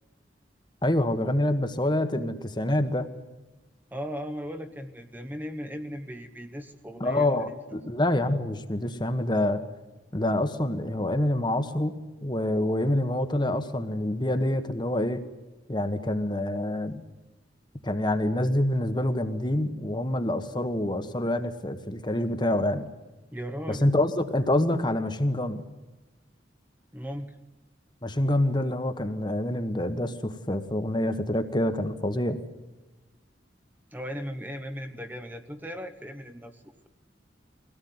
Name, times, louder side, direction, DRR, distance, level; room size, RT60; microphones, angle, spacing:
voice 1, 0.8-3.1 7.0-9.6 10.1-15.2 15.7-17.0 17.8-22.9 23.7-25.6 28.0-32.4, left 1 dB, 25° left, 9 dB, 1.4 m, -26 dB
voice 2, 3.9-7.6 23.3-23.8 26.9-27.4 33.9-36.9, equal, 10° right, 7 dB, 1.1 m, -37 dB
23.5 x 17.5 x 9.6 m, 1.1 s
head